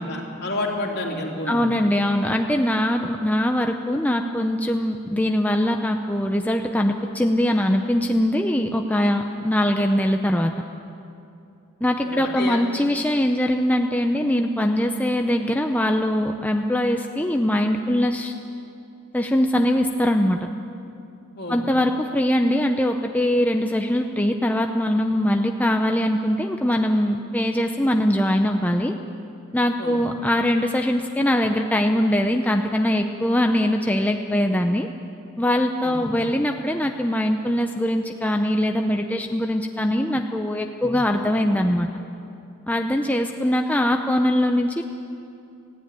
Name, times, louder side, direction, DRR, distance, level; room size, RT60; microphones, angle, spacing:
voice 1, 0.0-1.7 12.0-12.6 21.3-21.6 29.8-30.0 35.8-36.1, left 2 dB, 50° left, -1 dB, 3.1 m, -29 dB
voice 2, 1.5-10.5 11.8-18.3 19.1-20.4 21.5-28.9 29.5-34.9 35.4-41.9 42.7-44.8, left 1 dB, 10° left, 4 dB, 0.6 m, -22 dB
19.5 x 15.5 x 9.1 m, 2.7 s
head